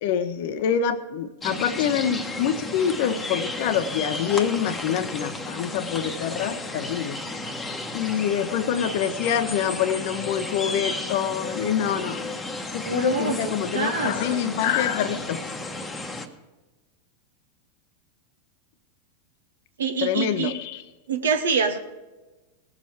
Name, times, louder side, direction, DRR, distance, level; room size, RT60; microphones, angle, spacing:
voice 1, 0.0-7.2 7.9-12.3 12.7-15.4 20.0-20.8, left 8 dB, 50° left, 0.8 m, -26 dB
sound 1, 1.4-16.3, left 2 dB, 15° left, 1.1 m, -33 dB
voice 2, 12.8-13.4 13.7-14.6 19.8-20.5 21.1-21.8, right 6 dB, 65° right, 0.9 m, -26 dB
19.0 x 7.3 x 4.8 m
figure-of-eight pair, 90°, 0 cm